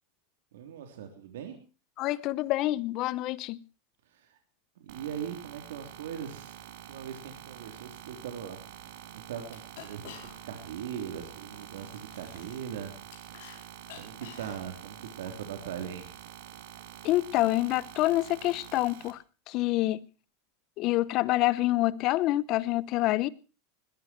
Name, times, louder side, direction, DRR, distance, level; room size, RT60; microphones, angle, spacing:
voice 1, 0.5-1.6 4.1-4.4 4.8-6.6 6.8-8.6 9.1-12.9 14.0-16.1, right 8 dB, 90° right, 3.5 m, -40 dB
voice 2, 2.0-3.6 17.0-19.2 19.5-20.0 20.8-23.3, left 17 dB, 35° left, 0.7 m, -27 dB
sound 1, 4.9-19.1, right 11 dB, 60° right, 2.7 m, -47 dB
sound 2, 8.7-8.8 9.1-9.2 9.4-10.7 11.0-13.6 13.8-15.3, left 10 dB, 60° left, 4.7 m, -50 dB
20.5 x 13.5 x 4.5 m
supercardioid pair, 170°, 0 cm